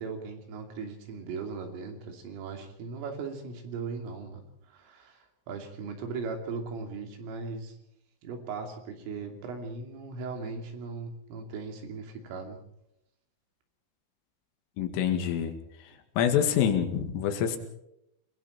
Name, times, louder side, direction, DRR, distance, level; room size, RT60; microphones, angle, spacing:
voice 1, 0.0-7.8 8.2-12.6, right 4 dB, 75° right, 4 dB, 5.4 m, -38 dB
voice 2, 14.8-15.5 16.2-17.6, left 9 dB, 80° left, 6 dB, 4.7 m, -26 dB
26.5 x 22.5 x 4.4 m, 0.77 s
omnidirectional pair, 5.9 m